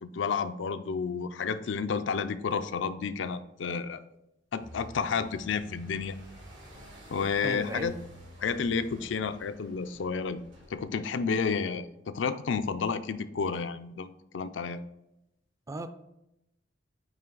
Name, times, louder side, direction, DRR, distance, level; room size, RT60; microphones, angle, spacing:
voice 1, 0.0-4.0 4.5-6.2 7.1-7.9 8.4-10.4 10.7-14.8, left 5 dB, 80° left, 12 dB, 0.4 m, -31 dB
sound 1, 4.6-10.8, equal, 85° right, 2.5 m, -49 dB
voice 2, 7.4-7.9 15.7-15.9, right 2 dB, 20° right, 9 dB, 0.4 m, -35 dB
9.1 x 3.2 x 3.8 m, 0.86 s
head